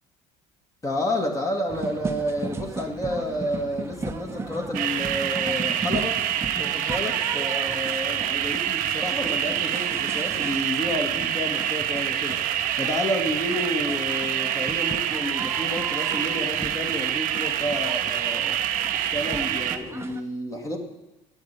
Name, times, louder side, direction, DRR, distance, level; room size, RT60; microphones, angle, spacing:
voice 1, 0.8-6.2 6.5-18.6 18.9-20.8, left 1 dB, 20° left, 2 dB, 2.0 m, -30 dB
sound 1, 1.7-20.2, right 3 dB, 15° right, 1.0 m, -36 dB
sound 2, 4.7-19.8, right 11 dB, 70° right, 0.9 m, -26 dB
10.5 x 8.4 x 8.9 m, 0.97 s
cardioid pair, 115°, 15 cm